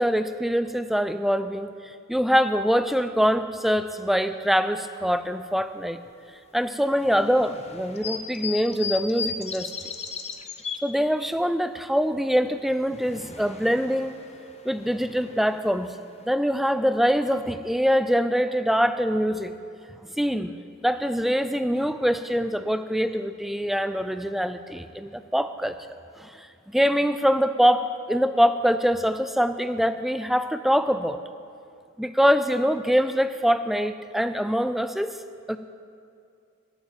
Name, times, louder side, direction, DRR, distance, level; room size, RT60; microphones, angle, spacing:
voice 1, 0.0-6.0 6.5-9.7 10.8-14.1 14.6-15.9 16.2-19.5 20.2-20.5 20.8-25.8 26.2-31.2 32.0-35.2 35.5-35.6, equal, ahead, 10 dB, 0.3 m, -24 dB
sound 1, 7.0-10.8 12.5-16.3, left 6 dB, 30° left, 0.7 m, -37 dB
13.5 x 7.3 x 8.9 m, 2.4 s
head